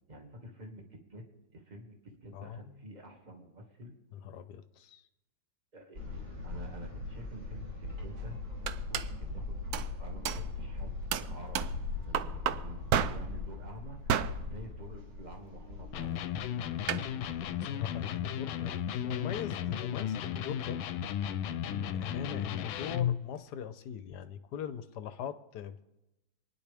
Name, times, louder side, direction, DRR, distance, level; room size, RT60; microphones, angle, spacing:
voice 1, 0.1-1.2 1.5-3.9 5.7-7.7 8.0-14.2 14.4-17.3, right 1 dB, 25° right, 2 dB, 1.8 m, -49 dB
voice 2, 2.3-2.9 4.1-5.0 17.7-20.8 21.9-25.8, left 8 dB, 65° left, 12 dB, 1.2 m, -41 dB
sound 1, 5.9-17.9 18.3-18.4 18.7-18.8, left 3 dB, 55° right, 3.9 m, -40 dB
sound 2, 8.2-8.3 8.7-9.1 9.7-10.0 10.2-10.5 11.1-11.9 12.1-13.4 14.1-14.5 16.9-17.1, right 10 dB, 70° right, 0.9 m, -32 dB
Electric guitar, 15.9-23.2, left 9 dB, 90° left, 1.4 m, -34 dB
27.5 x 10.0 x 3.4 m, 0.97 s
omnidirectional pair, 2.1 m